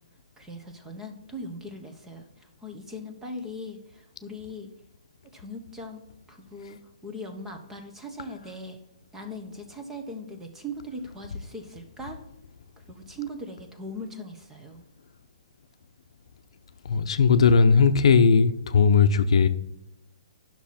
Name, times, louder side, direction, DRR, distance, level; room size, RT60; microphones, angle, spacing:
voice 1, 0.4-4.7 5.3-6.0 6.3-8.8 9.1-12.2 12.8-14.9, equal, 10° right, 1.2 m, -40 dB
voice 2, 16.8-19.5, left 5 dB, 70° left, 0.7 m, -18 dB
10.5 x 6.2 x 4.3 m
hypercardioid pair, 150°, 3 cm